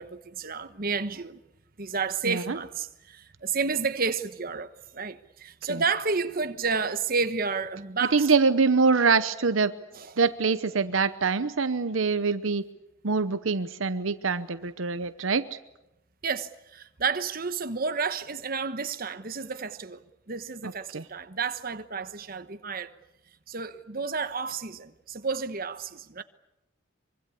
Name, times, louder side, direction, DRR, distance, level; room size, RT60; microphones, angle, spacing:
voice 1, 0.0-1.4 1.8-8.3 9.9-10.1 16.2-20.0 20.3-22.9 23.5-26.2, right 5 dB, 45° right, 1.2 m, -31 dB
voice 2, 2.2-2.6 5.7-5.8 8.1-9.7 10.2-12.6 13.0-15.5 20.6-21.0, right 4 dB, 75° right, 0.9 m, -24 dB
24.5 x 24.0 x 8.4 m
head